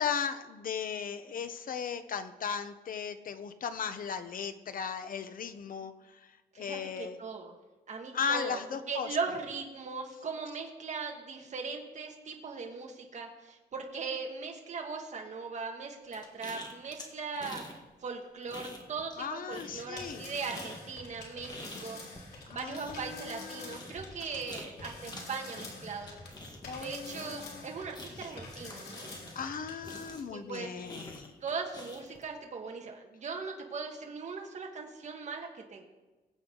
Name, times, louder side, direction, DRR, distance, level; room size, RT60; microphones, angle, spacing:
voice 1, 0.0-5.9 6.6-7.2 8.1-9.1 19.2-20.3 22.5-23.8 26.6-27.6 29.4-31.3, left 7 dB, 60° left, 10 dB, 0.8 m, -36 dB
voice 2, 6.5-7.5 7.9-8.6 8.9-17.6 18.0-22.0 22.5-26.2 26.7-29.1 30.3-30.7 31.4-35.8, right 4 dB, 45° right, 1 dB, 1.6 m, -39 dB
sound 1, 16.1-17.8 18.1-19.2 19.5-29.5 29.8-32.2, left 1 dB, 25° left, 1.6 m, -47 dB
sound 2, 19.8-30.1, left 2 dB, 90° left, 3.9 m, -47 dB
21.5 x 8.2 x 3.9 m, 1.2 s
wide cardioid pair, 145°, 16 cm